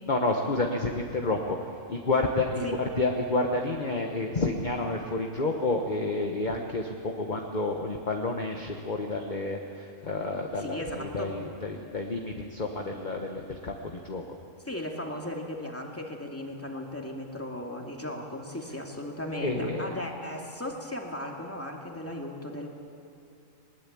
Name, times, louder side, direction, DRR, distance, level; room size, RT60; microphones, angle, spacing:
voice 1, 0.1-2.6 3.0-14.2 19.4-19.9, left 2 dB, 35° left, 2 dB, 1.4 m, -30 dB
voice 2, 10.6-11.4 14.6-22.7, left 1 dB, 10° left, 1 dB, 2.3 m, -36 dB
20.5 x 20.5 x 8.7 m, 2.6 s
omnidirectional pair, 1.4 m